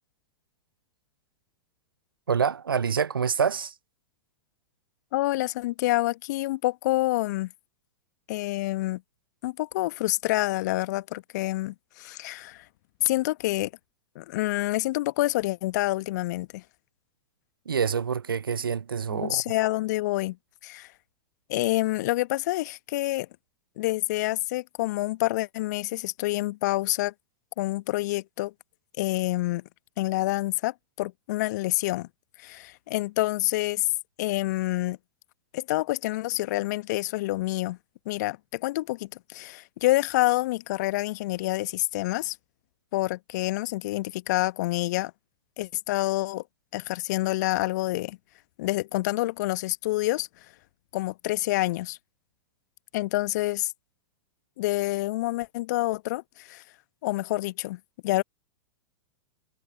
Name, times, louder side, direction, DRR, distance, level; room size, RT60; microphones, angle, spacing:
voice 1, 2.3-3.7 17.7-19.4, right 6 dB, 75° right, 0.7 m, -26 dB
voice 2, 5.1-7.5 8.3-9.0 9.4-12.6 13.0-13.7 14.1-16.6 19.1-20.4 20.6-20.9 21.5-23.3 23.8-27.1 27.6-28.5 29.0-29.6 30.0-32.1 32.4-33.9 34.2-35.0 35.5-37.8 38.0-42.4 42.9-45.1 45.6-46.4 46.7-48.2 48.6-50.3 50.9-52.0 52.9-53.7 54.6-56.6 57.0-58.2, left 18 dB, 50° left, 1.2 m, -27 dB
figure-of-eight pair, 100°, 12 cm